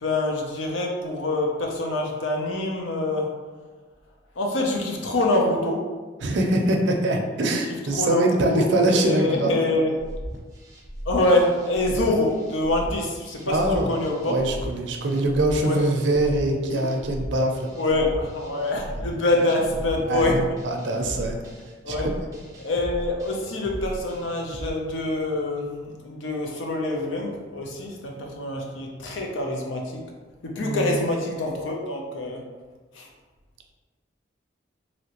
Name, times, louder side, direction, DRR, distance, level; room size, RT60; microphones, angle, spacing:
voice 1, 0.0-3.3 4.4-5.8 7.4-7.6 7.9-8.2 8.5-9.9 11.1-14.4 15.6-15.8 17.8-20.4 21.8-22.1 22.6-30.0 30.4-32.4 32.9-33.1, left 2 dB, 90° left, 0 dB, 0.6 m, -25 dB
voice 2, 6.2-9.5 11.9-12.0 13.5-14.0 14.2-17.7 18.9-19.0 20.1-21.4 21.9-22.0 30.6-30.9, right 1 dB, 75° right, 2 dB, 0.5 m, -23 dB
sound 1, 10.0-24.7, equal, 20° right, 0.5 m, -37 dB
3.1 x 2.8 x 2.9 m, 1.3 s
head